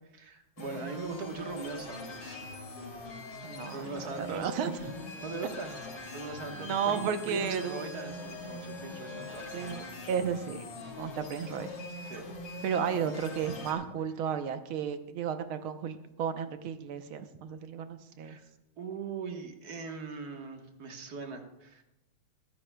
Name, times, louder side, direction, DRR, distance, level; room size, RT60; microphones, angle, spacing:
voice 1, 0.1-2.4 3.7-4.5 5.2-5.7 6.1-10.1 12.1-12.4 13.0-13.1 18.2-18.5 18.8-21.8, right 4 dB, 50° right, 4 dB, 1.7 m, -41 dB
sound 1, 0.6-13.7, left 2 dB, 80° left, 3.0 m, -42 dB
voice 2, 3.4-4.9 6.5-7.8 9.5-10.7 11.0-11.7 12.6-18.4, right 7 dB, 80° right, 9 dB, 1.7 m, -33 dB
Bowed string instrument, 4.6-9.9, equal, ahead, 3.8 m, -52 dB
22.5 x 12.0 x 2.2 m, 0.90 s
omnidirectional pair, 2.3 m